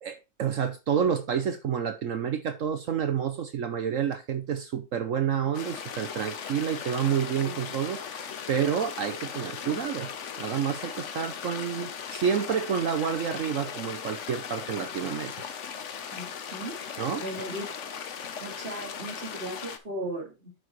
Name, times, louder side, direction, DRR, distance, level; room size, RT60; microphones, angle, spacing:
voice 1, 0.0-10.1 10.4-15.3 17.0-17.2, right 8 dB, 65° right, 0.8 m, -29 dB
sound 1, 5.5-19.8, left 7 dB, 50° left, 0.9 m, -38 dB
voice 2, 16.1-16.8 17.2-17.7 18.4-20.5, right 1 dB, 30° right, 2.4 m, -37 dB
9.7 x 6.1 x 3.1 m
omnidirectional pair, 2.0 m